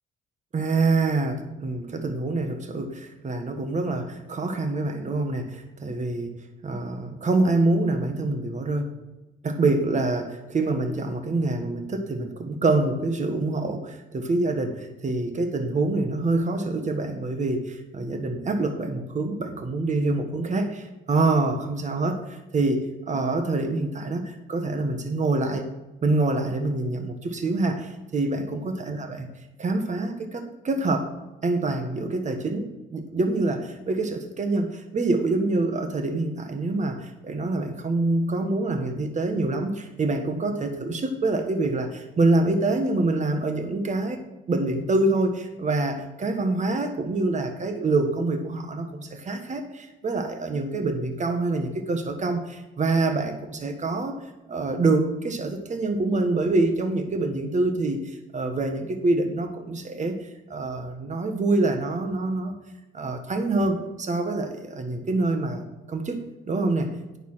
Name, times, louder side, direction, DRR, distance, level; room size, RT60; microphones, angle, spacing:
voice 1, 0.5-6.3 6.6-8.9 9.4-25.7 26.0-29.3 29.6-31.1 31.4-44.2 44.5-54.2 54.5-62.6 62.9-67.2, right 2 dB, 35° right, 5 dB, 1.6 m, -26 dB
9.4 x 7.0 x 5.7 m, 1.1 s
cardioid pair, 90°, 20 cm